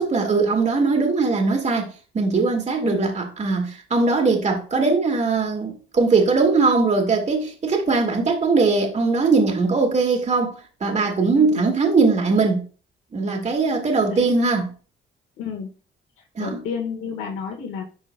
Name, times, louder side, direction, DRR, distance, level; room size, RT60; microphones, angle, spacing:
voice 1, 0.0-12.6 13.1-14.7 16.3-16.6, right 4 dB, 35° right, 1.8 m, -20 dB
voice 2, 11.3-11.6 14.1-14.3 15.4-15.7 16.4-17.8, left 6 dB, 90° left, 1.4 m, -30 dB
11.0 x 4.0 x 2.2 m
cardioid pair, 90°, 20 cm